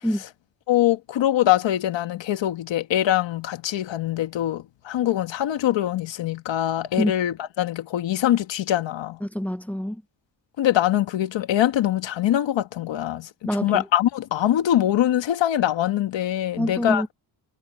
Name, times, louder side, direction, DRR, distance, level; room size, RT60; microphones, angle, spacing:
voice 1, 0.7-9.2 10.6-17.0, left 12 dB, 80° left, 1.5 m, -23 dB
voice 2, 9.2-10.0 13.4-13.8 16.6-17.1, equal, 5° left, 0.7 m, -26 dB
wide cardioid pair, 170°, 44 cm